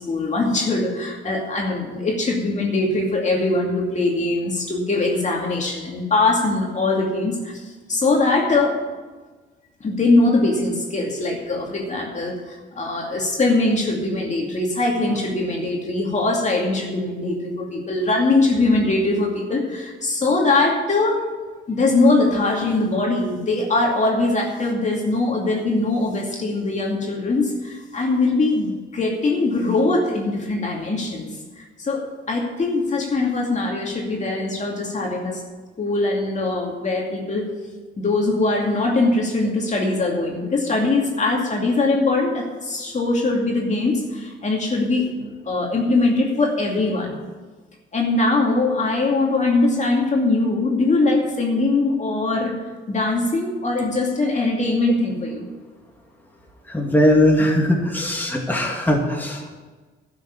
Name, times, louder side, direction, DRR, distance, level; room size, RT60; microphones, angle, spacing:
voice 1, 0.0-8.8 9.8-21.3 21.7-31.3 31.6-35.4 35.8-37.5 38.0-45.1 45.4-47.2 47.9-52.6 52.9-55.4, left 2 dB, 35° left, 0 dB, 2.4 m, -21 dB
voice 2, 56.7-59.6, left 1 dB, 10° left, -1 dB, 2.5 m, -19 dB
11.5 x 6.7 x 9.5 m, 1.3 s
cardioid pair, 90°, 20 cm